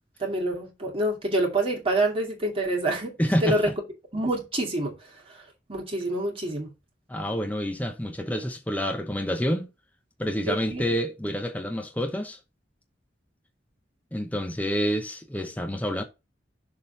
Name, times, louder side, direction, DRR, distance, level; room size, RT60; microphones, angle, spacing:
voice 1, 0.2-3.1 3.4-3.7 4.1-4.9 5.3-5.4 5.7-6.7 10.5-10.8, right 1 dB, 30° right, 2.4 m, -26 dB
voice 2, 3.2-3.6 7.1-9.7 10.2-12.4 14.1-16.0, equal, 10° left, 0.9 m, -28 dB
6.7 x 3.7 x 5.6 m
head